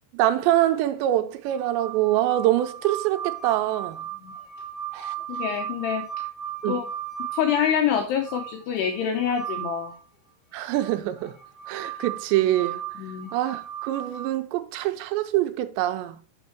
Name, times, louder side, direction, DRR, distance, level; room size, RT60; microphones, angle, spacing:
voice 1, 0.1-4.1 4.9-5.2 6.6-6.8 10.5-11.4 11.7-12.8 13.3-16.2, right 14 dB, 80° right, 2.8 m, -24 dB
sound 1, 1.5-10.0 10.8-14.3, right 9 dB, 20° left, 3.1 m, -36 dB
voice 2, 5.3-6.2 6.7-6.9 7.3-9.9 13.0-13.3, left 8 dB, 75° left, 2.7 m, -26 dB
6.8 x 6.3 x 4.5 m
omnidirectional pair, 5.1 m